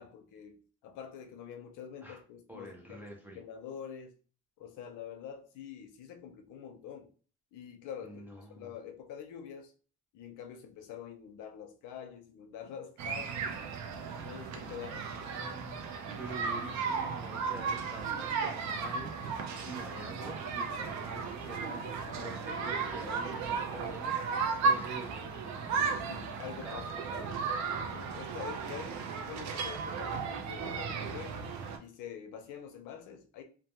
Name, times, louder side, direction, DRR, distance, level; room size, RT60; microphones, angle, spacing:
voice 1, 0.0-3.1 3.4-4.1 4.6-7.1 7.5-8.2 8.5-9.7 10.1-13.5 14.2-15.0 22.1-22.3 26.1-26.9 27.2-27.3 27.8-31.4 31.8-33.4, left 8 dB, 90° left, 0.6 m, -46 dB
voice 2, 2.5-3.4 8.0-8.7 14.6-27.3, right 1 dB, 5° right, 0.4 m, -47 dB
sound 1, 13.0-31.8, right 5 dB, 70° right, 0.5 m, -35 dB
2.2 x 2.1 x 2.8 m
cardioid pair, 170°, 30 cm